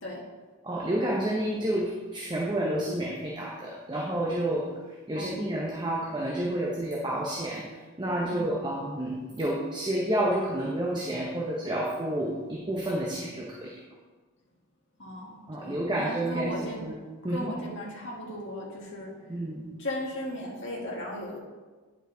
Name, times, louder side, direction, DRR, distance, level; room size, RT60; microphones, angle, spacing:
voice 1, 0.6-4.7 5.1-7.7 8.0-13.8 15.5-17.5 19.3-19.6, right 1 dB, 20° right, -3 dB, 0.8 m, -30 dB
voice 2, 15.0-16.9 17.3-19.1 19.8-21.4, left 1 dB, 55° left, -4 dB, 1.8 m, -36 dB
9.7 x 5.4 x 3.8 m, 1.3 s
head